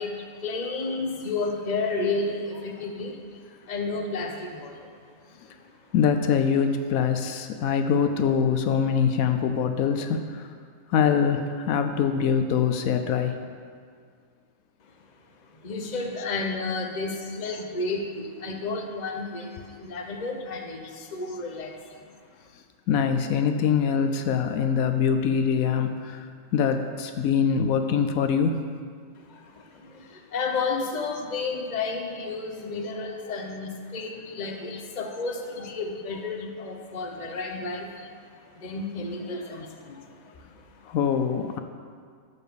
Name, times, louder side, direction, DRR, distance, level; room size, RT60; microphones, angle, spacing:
voice 1, 0.0-3.2 3.6-4.9 5.2-5.6 15.5-22.1 29.1-41.0, left 3 dB, 35° left, 2 dB, 0.9 m, -32 dB
voice 2, 5.9-10.2 10.9-13.4 22.9-25.9 26.5-28.6 34.7-34.8 40.9-41.6, left 7 dB, 80° left, 7 dB, 1.0 m, -23 dB
12.0 x 4.3 x 6.9 m, 2.1 s
omnidirectional pair, 1.5 m